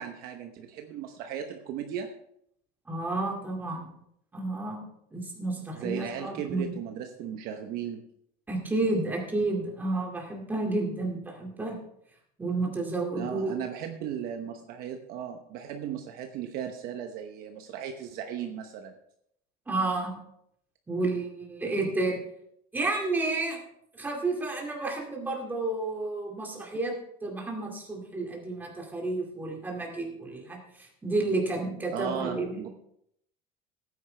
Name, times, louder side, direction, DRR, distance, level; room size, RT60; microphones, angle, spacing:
voice 1, 0.0-2.1 5.8-8.0 13.1-18.9 31.9-32.7, right 9 dB, 50° right, 5 dB, 1.0 m, -36 dB
voice 2, 2.9-3.9 4.3-4.9 5.1-6.7 8.5-11.7 12.4-13.6 19.7-20.1 20.9-22.2 22.7-23.6 23.9-26.9 27.2-32.7, right 2 dB, 10° right, -1 dB, 2.3 m, -31 dB
17.0 x 9.6 x 3.3 m, 0.73 s
cardioid pair, 175°, 20 cm